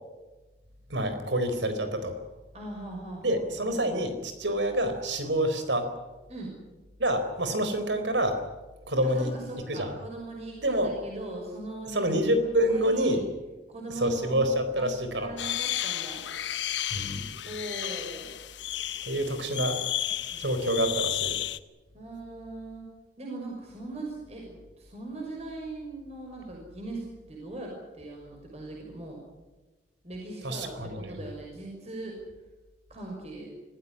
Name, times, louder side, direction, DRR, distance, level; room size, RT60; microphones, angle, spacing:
voice 1, 0.9-2.2 3.2-5.9 7.0-8.4 8.9-9.3 9.7-9.9 10.6-10.9 11.9-13.2 13.9-15.3 16.9-17.3 19.0-19.8 20.3-21.4 30.4-31.1, right 1 dB, 90° right, 9 dB, 4.4 m, -27 dB
voice 2, 2.5-3.4 6.3-6.6 9.0-12.1 12.4-13.2 13.7-14.4 14.7-14.9 15.2-16.2 17.5-18.3 21.9-22.9 23.2-29.2 30.0-32.2 32.9-33.5, right 2 dB, 35° right, -1 dB, 6.0 m, -40 dB
sound 1, 15.4-21.6, left 12 dB, 85° left, 0.9 m, -33 dB
25.5 x 15.5 x 9.9 m, 1.2 s
head